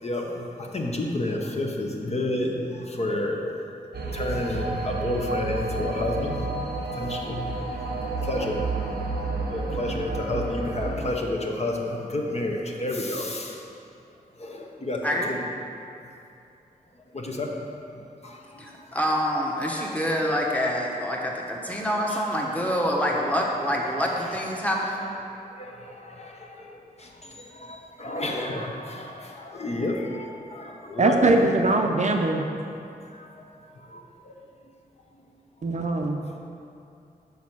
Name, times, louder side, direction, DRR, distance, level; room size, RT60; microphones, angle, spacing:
voice 1, 0.0-3.7 3.9-9.1 9.5-13.6 14.4-15.4 17.1-17.7 17.9-18.9 19.8-19.9 22.1-22.2 23.2-23.3 24.2-24.6 25.3-31.4 33.1-34.4 36.2-36.4, left 1 dB, 45° left, 0 dB, 0.8 m, -31 dB
sound 1, 3.9-11.1, right 3 dB, 85° right, 0.9 m, -31 dB
voice 2, 15.0-15.3 18.6-25.1, equal, 10° left, -2 dB, 1.1 m, -26 dB
voice 3, 31.0-32.4 35.6-36.2, right 2 dB, 45° right, 3 dB, 0.5 m, -21 dB
6.2 x 5.4 x 6.0 m, 2.7 s
wide cardioid pair, 95°, 16 cm